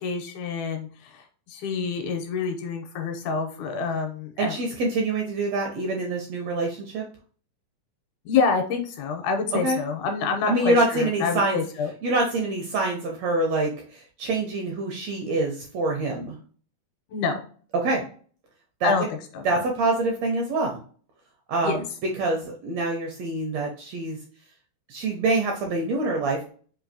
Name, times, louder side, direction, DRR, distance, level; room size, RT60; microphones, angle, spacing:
voice 1, 0.0-4.6 8.3-11.9 15.2-15.3 17.1-17.4 18.8-19.1 19.4-19.6 21.6-21.8, left 5 dB, 80° left, 4 dB, 2.0 m, -27 dB
voice 2, 4.4-7.0 9.6-9.8 10.5-11.6 12.0-16.3 17.7-18.0 18.8-19.1 19.4-20.8 21.5-21.8 22.2-24.2 24.9-26.5, right 2 dB, 75° right, 1 dB, 1.6 m, -25 dB
5.3 x 2.6 x 2.6 m, 0.43 s
omnidirectional pair, 3.7 m